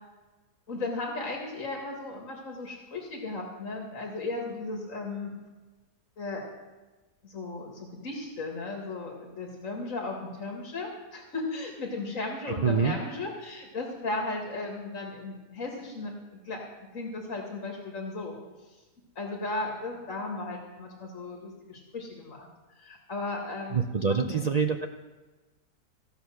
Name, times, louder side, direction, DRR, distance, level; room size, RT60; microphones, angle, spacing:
voice 1, 0.7-5.3 6.2-6.4 7.2-16.1 16.4-18.4 19.2-22.5 22.8-23.8 24.1-24.5, left 2 dB, 55° left, 0 dB, 2.3 m, -36 dB
voice 2, 12.6-13.0 23.7-24.9, right 6 dB, 75° right, 4 dB, 0.3 m, -25 dB
15.0 x 8.6 x 6.3 m, 1.2 s
omnidirectional pair, 1.6 m